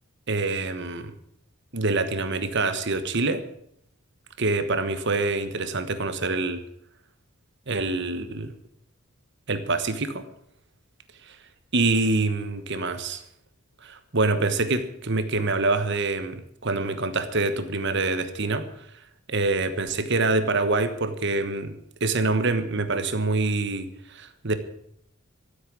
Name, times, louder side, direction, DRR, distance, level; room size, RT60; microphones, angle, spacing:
voice 1, 0.3-1.1 1.7-3.4 4.4-6.6 7.7-8.5 9.5-10.3 11.2-11.4 11.7-13.2 13.8-18.9 19.3-24.6, right 3 dB, 55° right, 10 dB, 1.3 m, -26 dB
14.0 x 8.3 x 8.6 m, 0.69 s
head